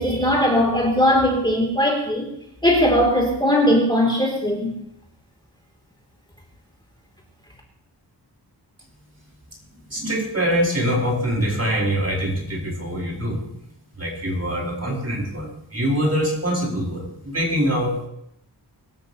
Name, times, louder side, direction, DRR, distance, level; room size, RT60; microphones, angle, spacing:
voice 1, 0.0-2.2 2.6-4.7, equal, 10° left, 3.2 m, -19 dB
voice 2, 9.9-13.4 14.0-18.1, equal, 40° right, 4.7 m, -24 dB
23.0 x 12.5 x 3.1 m
wide cardioid pair, 90°, 40 cm